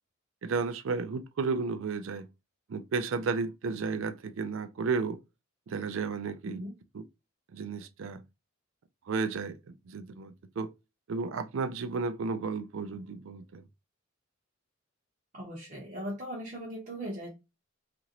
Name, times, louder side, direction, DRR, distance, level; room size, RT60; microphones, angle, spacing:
voice 1, 0.4-2.3 2.7-5.2 5.7-6.6 6.9-7.0 7.5-8.2 9.1-10.7 11.1-13.6, right 4 dB, 70° right, 0.4 m, -33 dB
voice 2, 15.3-17.3, equal, 35° right, 0.7 m, -38 dB
2.9 x 2.5 x 2.8 m
head